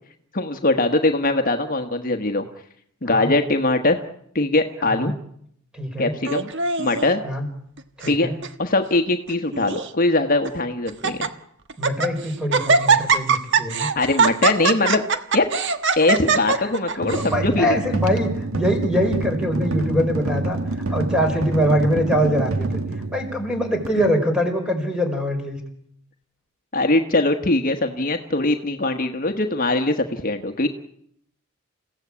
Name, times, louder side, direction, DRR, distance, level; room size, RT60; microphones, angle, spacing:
voice 1, 0.3-2.4 3.0-4.0 4.3-5.1 6.0-6.5 6.8-7.2 8.1-8.3 8.6-11.3 13.9-15.0 15.3-15.5 16.0-17.8 26.7-30.7, left 2 dB, 40° left, 6 dB, 1.3 m, -21 dB
voice 2, 5.7-6.1 7.2-7.5 8.0-8.4 11.8-13.9 16.6-20.6 20.9-22.7 23.1-25.6, equal, 5° right, 4 dB, 4.8 m, -23 dB
Laughter, 6.3-7.1 7.8-8.2 8.4-8.5 9.3-9.9 10.4-10.5 10.9-11.3 11.7-12.1 12.5-17.3, right 5 dB, 60° right, 1.4 m, -21 dB
sound 1, 17.0-23.9, right 2 dB, 75° right, 1.8 m, -27 dB
28.5 x 16.0 x 8.6 m, 0.71 s
head